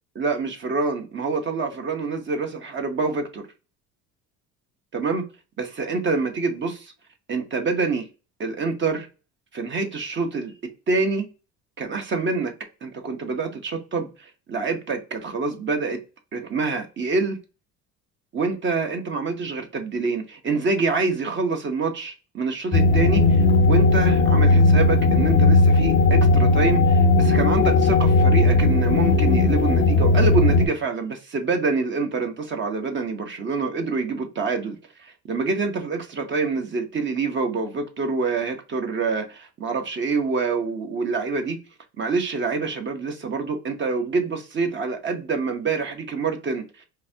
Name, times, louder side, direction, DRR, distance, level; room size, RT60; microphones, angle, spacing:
voice 1, 0.1-3.5 4.9-5.2 5.6-6.9 7.3-8.1 8.4-9.1 9.5-10.5 10.9-11.3 11.8-12.5 12.8-16.0 16.3-17.4 18.3-41.6 42.0-46.8, right 4 dB, 35° right, 0.9 m, -26 dB
sound 1, 22.7-30.7, left 3 dB, 35° left, 0.6 m, -17 dB
3.9 x 2.7 x 2.7 m
supercardioid pair, 95°, 34 cm